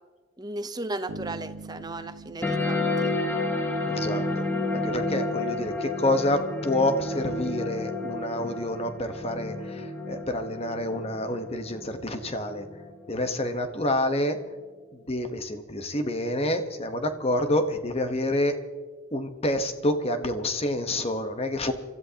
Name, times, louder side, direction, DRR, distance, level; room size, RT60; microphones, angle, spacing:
voice 1, 0.4-3.2, right 2 dB, 20° right, 10 dB, 0.7 m, -35 dB
sound 1, 1.1-4.1, right 2 dB, 85° right, 1.6 m, -43 dB
sound 2, 2.4-13.4, left 2 dB, 10° left, 1.3 m, -31 dB
voice 2, 3.8-4.2 4.7-12.6 13.1-14.4 14.9-18.6 19.1-21.7, left 1 dB, 30° left, 8 dB, 1.1 m, -28 dB
29.5 x 14.0 x 2.9 m, 1.5 s
head